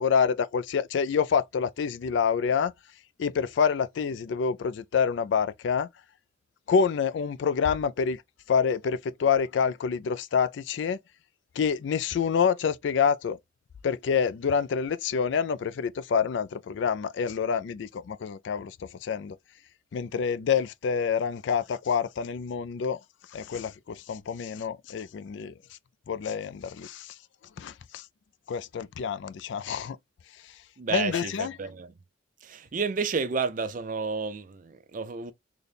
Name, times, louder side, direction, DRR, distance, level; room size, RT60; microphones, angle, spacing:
voice 1, 0.0-2.7 3.2-5.9 6.7-8.2 8.5-11.0 11.6-13.4 13.8-19.4 19.9-23.0 23.3-25.5 26.1-27.1 27.6-28.0 28.5-30.0 30.9-31.6, left 6 dB, 65° left, 0.3 m, -27 dB
voice 2, 30.8-31.9 32.4-35.3, right 5 dB, 40° right, 0.4 m, -31 dB
3.9 x 2.2 x 3.3 m
head